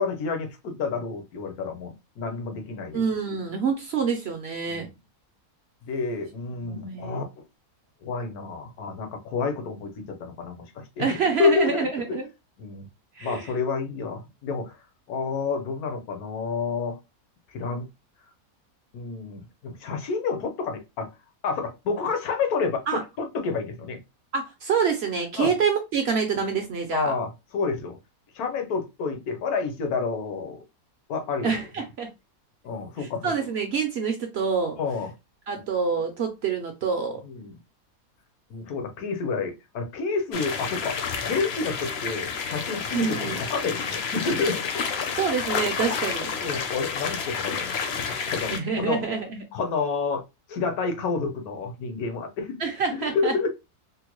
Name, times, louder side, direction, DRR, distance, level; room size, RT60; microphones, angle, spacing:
voice 1, 0.0-3.3 4.7-4.9 5.8-7.4 8.0-12.2 12.6-12.9 13.2-14.8 15.1-17.0 17.5-17.9 18.9-21.1 21.4-24.0 25.4-25.5 26.9-28.0 28.3-30.6 31.1-31.5 32.6-33.3 34.8-35.1 37.2-37.5 38.5-45.3 46.4-49.0 49.5-52.6 53.1-53.5, left 4 dB, 80° left, 1.3 m, -29 dB
voice 2, 2.9-4.9 6.6-7.2 11.0-12.3 13.2-13.5 22.9-23.0 24.3-27.1 31.4-32.1 33.0-34.8 35.5-37.2 42.9-43.4 45.1-46.3 48.5-49.4 52.6-53.4, right 6 dB, 60° right, 0.7 m, -27 dB
sound 1, 40.3-48.6, left 6 dB, 60° left, 0.7 m, -30 dB
3.7 x 2.1 x 3.0 m
omnidirectional pair, 1.5 m